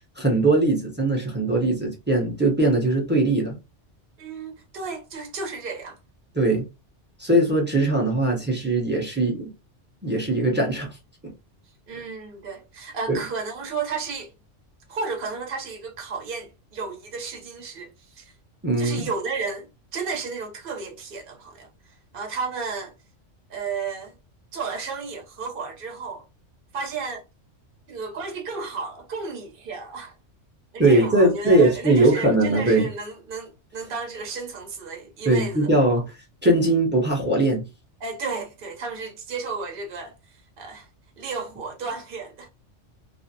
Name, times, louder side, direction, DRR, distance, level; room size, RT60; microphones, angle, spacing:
voice 1, 0.2-3.5 6.4-6.7 7.2-9.5 10.0-11.0 11.2-11.3 13.1-13.2 18.6-19.1 30.8-32.9 35.3-36.0 36.4-37.6, right 2 dB, 10° right, 0.6 m, -20 dB
voice 2, 4.2-6.0 11.9-14.3 14.9-18.3 18.8-19.7 19.9-22.9 23.5-24.2 24.5-26.3 26.7-27.2 27.9-30.1 30.7-35.7 38.0-40.9 41.2-42.5, right 4 dB, 50° right, 0.9 m, -33 dB
2.4 x 2.0 x 2.6 m
omnidirectional pair, 1.2 m